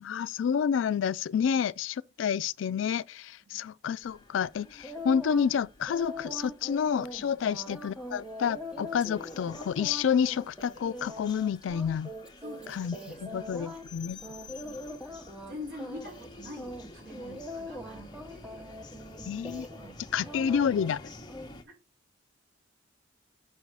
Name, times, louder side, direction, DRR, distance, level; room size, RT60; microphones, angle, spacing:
voice 1, 0.0-12.1 12.7-13.0 13.2-14.2 19.3-19.7 20.1-21.0, left 7 dB, 80° left, 0.3 m, -29 dB
sound 1, 4.0-21.6, left 2 dB, 20° left, 0.9 m, -50 dB
sound 2, 4.8-5.5 5.9-13.8 14.2-15.5 15.8-16.3 16.6-19.9 20.2-20.9 21.3-21.5, left 1 dB, 5° right, 1.0 m, -42 dB
voice 2, 12.4-13.8 14.6-15.1 15.5-18.7 19.7-20.9, left 1 dB, 55° right, 4.7 m, -46 dB
6.5 x 5.6 x 4.6 m
head